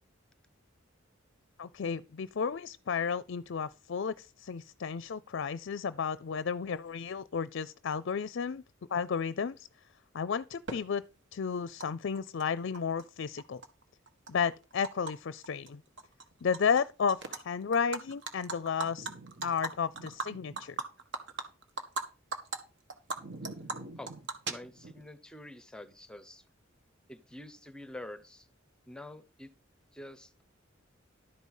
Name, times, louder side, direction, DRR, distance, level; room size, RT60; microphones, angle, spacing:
voice 1, 1.6-8.6 8.9-9.7 10.1-11.0 11.3-13.6 14.3-15.8 16.4-19.1 19.4-20.8, left 6 dB, 60° left, 0.5 m, -33 dB
Animal, 10.7-10.8 11.8-11.9 12.1-13.0 13.4-15.1 15.4-15.7 16.0-16.8 17.1-17.4 17.7-22.0 22.3-22.6 22.9-25.0, right 3 dB, 60° right, 1.8 m, -39 dB
voice 2, 24.5-26.4 27.1-28.5 28.9-29.5 29.9-30.4, left 1 dB, 5° left, 0.8 m, -47 dB
12.5 x 5.4 x 6.3 m
head